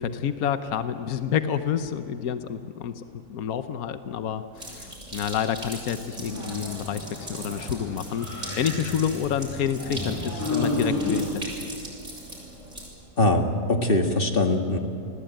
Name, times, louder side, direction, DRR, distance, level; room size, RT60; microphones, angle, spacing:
voice 1, 0.0-3.0 3.3-8.3 8.6-11.3, left 8 dB, 75° left, 10 dB, 1.4 m, -28 dB
sound 1, 4.5-12.9, right 1 dB, 55° right, 7.8 m, -40 dB
sound 2, 6.2-11.2, left 2 dB, 10° left, 6.9 m, -32 dB
voice 2, 13.2-14.8, left 2 dB, 35° left, 4 dB, 2.1 m, -22 dB
29.5 x 20.5 x 9.1 m, 2.6 s
omnidirectional pair, 1.6 m